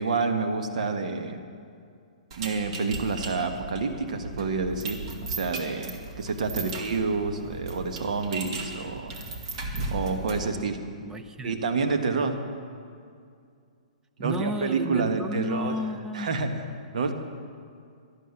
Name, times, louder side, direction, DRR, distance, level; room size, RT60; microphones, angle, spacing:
voice 1, 0.0-1.4 2.4-9.1 9.9-10.8 11.4-12.4 14.2-15.8 16.1-16.6 16.9-17.1, right 4 dB, 65° right, 6 dB, 1.4 m, -28 dB
sound 1, 2.3-10.6, right 3 dB, 50° right, 2.1 m, -36 dB
voice 2, 11.1-11.5 14.2-16.3, right 1 dB, 15° right, 9 dB, 0.7 m, -33 dB
12.0 x 12.0 x 7.1 m, 2.3 s
hypercardioid pair, 135°, 4 cm